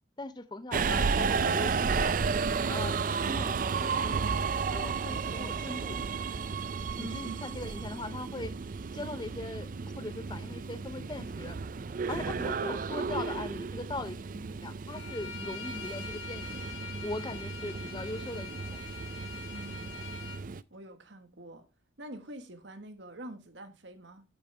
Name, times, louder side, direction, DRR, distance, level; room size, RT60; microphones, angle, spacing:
voice 1, 0.2-2.2 2.7-4.2 4.7-6.0 7.0-8.5 8.9-9.7 10.0-11.6 12.1-14.2 14.6-16.5 17.0-18.8, left 2 dB, 20° left, 0.6 m, -40 dB
Subway metro underground, 0.7-20.6, right 5 dB, 45° right, 0.4 m, -33 dB
voice 2, 7.0-7.5 19.5-19.9 20.7-21.6 22.0-24.2, right 2 dB, 70° right, 1.4 m, -45 dB
Bowed string instrument, 14.9-20.4, left 5 dB, 80° left, 1.6 m, -44 dB
8.9 x 8.6 x 3.3 m
head